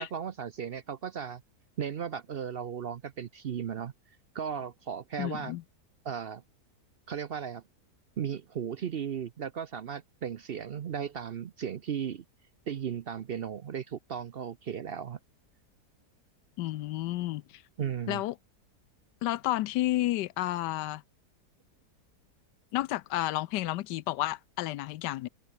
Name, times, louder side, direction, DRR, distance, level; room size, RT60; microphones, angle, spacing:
voice 1, 0.0-1.4 1.8-3.9 4.3-5.5 6.0-6.4 7.1-7.6 8.2-12.2 12.7-15.2 17.8-18.2, right 8 dB, 65° right, 0.5 m, -36 dB
voice 2, 5.2-5.6 16.6-17.6 18.1-18.3 19.2-21.0 22.7-25.3, left 15 dB, 80° left, 1.2 m, -31 dB
open air
omnidirectional pair, 1.8 m